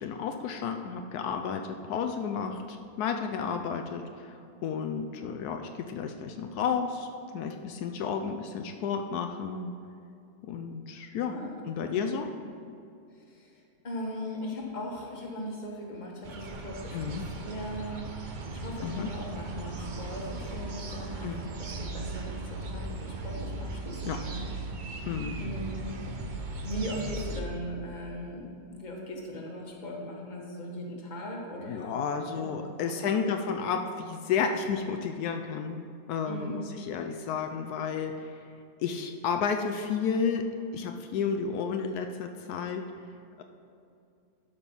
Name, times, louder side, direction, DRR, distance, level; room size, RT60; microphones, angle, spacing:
voice 1, 0.0-9.7 10.4-11.4 11.6-12.3 16.9-17.3 18.8-19.1 21.2-21.4 24.0-24.2 25.0-25.4 31.6-35.8 36.1-38.5 38.8-42.9 43.4-43.5, left 6 dB, 80° left, 6 dB, 1.1 m, -32 dB
voice 2, 11.3-12.0 13.3-24.4 25.4-26.0 26.6-32.0 32.3-32.4 32.7-33.3 36.3-36.7, equal, 30° left, -1 dB, 1.4 m, -39 dB
sound 1, 16.2-27.4, right 3 dB, 45° right, 0.6 m, -38 dB
11.5 x 5.3 x 5.5 m, 2.6 s
omnidirectional pair, 1.6 m